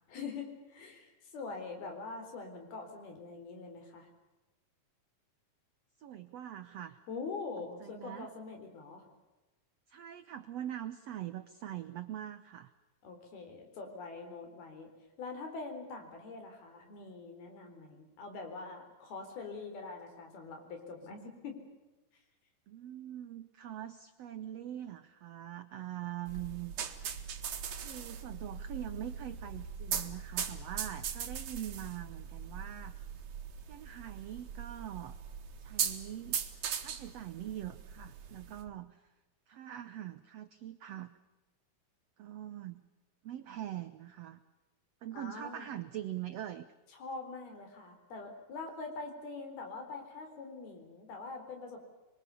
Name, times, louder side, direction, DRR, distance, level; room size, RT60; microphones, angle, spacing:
voice 1, 0.1-4.1 7.1-9.0 13.0-14.9 15.2-21.6 45.1-45.7 46.9-51.9, left 4 dB, 90° left, 5 dB, 6.0 m, -44 dB
voice 2, 6.0-7.0 7.8-8.3 9.9-12.7 22.7-26.7 27.8-33.0 33.7-35.2 35.6-36.4 36.8-39.1 39.5-41.1 42.2-42.8 43.2-44.4 45.0-46.7, right 12 dB, 90° right, 10 dB, 1.4 m, -43 dB
sound 1, 26.3-38.7, right 7 dB, 55° right, 2.9 m, -40 dB
27.0 x 23.0 x 7.0 m, 1.1 s
omnidirectional pair, 4.3 m